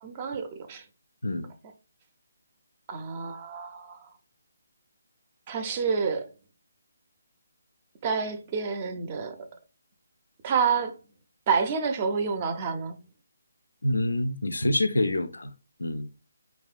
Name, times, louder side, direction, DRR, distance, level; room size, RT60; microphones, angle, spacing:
voice 1, 0.0-0.9 2.9-4.1 5.5-6.3 8.0-9.5 10.4-11.0 11.5-13.0, right 5 dB, 30° right, 0.4 m, -28 dB
voice 2, 13.8-15.5 15.8-16.1, left 1 dB, 90° left, 0.3 m, -26 dB
2.7 x 2.2 x 2.4 m
hypercardioid pair, 160°, 0 cm